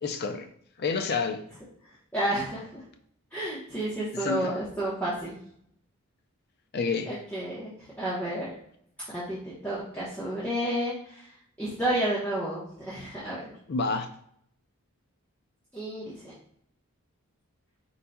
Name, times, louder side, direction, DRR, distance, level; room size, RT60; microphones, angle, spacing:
voice 1, 0.0-0.5 0.8-1.4 4.1-4.6 6.7-7.2 13.7-14.1, left 4 dB, 45° left, 0.4 m, -29 dB
voice 2, 2.1-2.8 3.3-5.4 7.1-7.7 8.0-8.5 9.1-11.2 11.6-13.4 15.7-16.3, right 1 dB, 5° left, 0.9 m, -31 dB
4.5 x 3.9 x 2.2 m
head